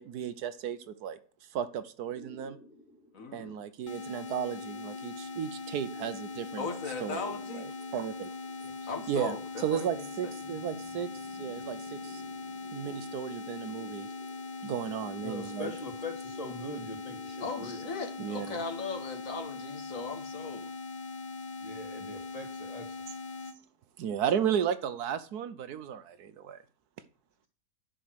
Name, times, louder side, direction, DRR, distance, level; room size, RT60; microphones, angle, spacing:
voice 1, 0.0-2.6 3.3-7.3 7.9-8.3 9.1-12.2 12.7-14.1 14.6-15.7 18.2-18.6 24.0-26.6, right 9 dB, 75° right, 1.2 m, -34 dB
sound 1, 2.1-19.4, left 1 dB, 5° right, 1.2 m, -56 dB
voice 2, 3.1-3.6 6.6-7.7 8.6-10.0 17.4-20.7, left 4 dB, 55° left, 1.6 m, -38 dB
sound 2, 3.9-23.6, left 3 dB, 90° left, 0.4 m, -41 dB
voice 3, 10.5-11.0 11.4-12.0 12.4-12.9 15.2-17.9 21.6-23.1, left 2 dB, 20° left, 2.1 m, -43 dB
10.0 x 6.0 x 6.2 m
omnidirectional pair, 1.7 m